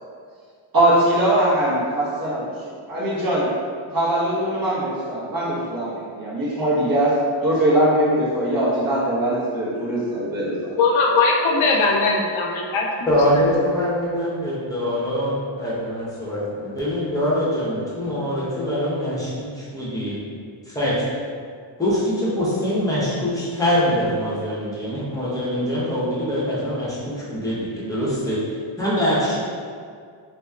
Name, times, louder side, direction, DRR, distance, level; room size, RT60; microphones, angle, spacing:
voice 1, 0.7-2.4 2.9-3.5 3.9-7.1 7.4-10.7, right 1 dB, 40° right, -9 dB, 1.2 m, -21 dB
voice 2, 10.8-13.4, left 3 dB, 70° left, -1 dB, 0.5 m, -20 dB
voice 3, 13.1-20.2 20.7-20.9 21.8-28.4 28.8-29.4, equal, 5° left, -9 dB, 0.9 m, -23 dB
2.9 x 2.7 x 2.4 m, 2.1 s
cardioid pair, 80°, 50 cm